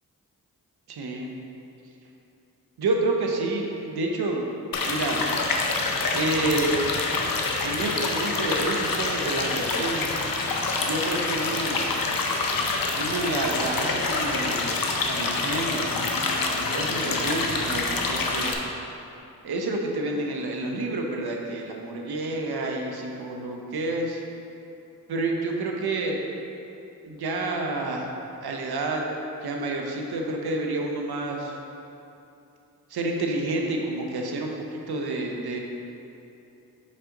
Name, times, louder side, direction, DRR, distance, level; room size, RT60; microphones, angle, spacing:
voice 1, 0.9-1.3 2.8-4.5 4.8-5.2 6.1-6.8 7.6-10.1 10.7-12.0 12.9-15.9 16.7-18.6 19.4-24.2 25.1-26.3 27.0-28.1 28.4-29.1 29.4-31.6 32.9-35.6, right 2 dB, 75° right, 1 dB, 0.8 m, -29 dB
sound 1, 4.7-18.5, left 3 dB, 60° left, 0.8 m, -26 dB
5.5 x 5.0 x 3.8 m, 2.8 s
cardioid pair, 50°, 39 cm